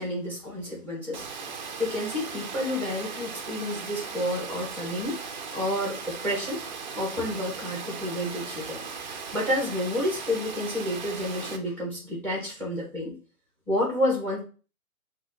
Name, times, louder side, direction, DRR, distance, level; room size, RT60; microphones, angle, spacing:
voice 1, 0.0-6.6 6.9-8.8 9.3-13.1 13.7-14.4, left 1 dB, 5° left, -2 dB, 1.3 m, -30 dB
Water, 1.1-11.6, right 5 dB, 35° right, 0.4 m, -38 dB
5.7 x 2.7 x 2.7 m, 0.36 s
hypercardioid pair, 135°, 42 cm